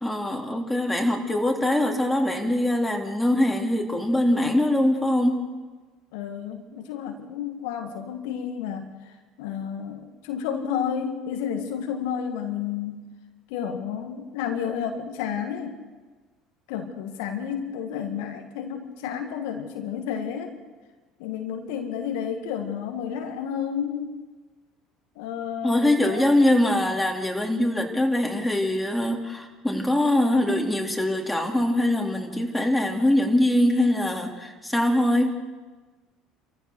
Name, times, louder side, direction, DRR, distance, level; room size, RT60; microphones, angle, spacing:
voice 1, 0.0-5.4 25.6-35.4, left 1 dB, 5° left, 1 dB, 3.3 m, -23 dB
voice 2, 6.1-13.1 13.5-15.8 16.7-20.5 21.2-24.2 25.1-26.5, left 8 dB, 70° left, 5 dB, 1.7 m, -31 dB
28.0 x 14.5 x 6.5 m, 1.3 s
hypercardioid pair, 65°, 0 cm